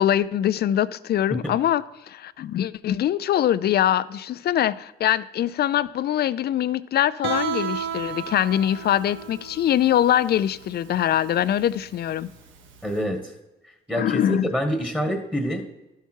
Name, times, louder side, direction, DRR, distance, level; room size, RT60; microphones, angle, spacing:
voice 1, 0.0-12.3 13.9-14.5, left 11 dB, 55° left, 0.4 m, -23 dB
Guitar, 7.2-12.9, right 6 dB, 75° right, 1.0 m, -33 dB
voice 2, 12.8-13.2 13.9-15.6, equal, 5° right, 1.4 m, -26 dB
12.0 x 5.8 x 4.5 m
cardioid pair, 90°, 20 cm